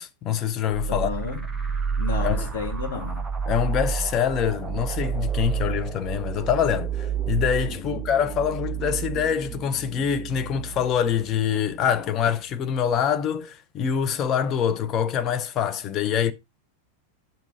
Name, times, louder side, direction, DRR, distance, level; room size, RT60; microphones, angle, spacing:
voice 1, 0.0-1.1 2.2-2.5 3.5-16.3, left 8 dB, 30° left, 0.9 m, -25 dB
sound 1, 0.7-12.1, right 7 dB, 10° right, 1.1 m, -30 dB
voice 2, 0.9-1.4 2.0-3.2 7.8-8.1, left 5 dB, 55° left, 2.7 m, -32 dB
8.9 x 6.2 x 3.9 m
figure-of-eight pair, 90°, 0 cm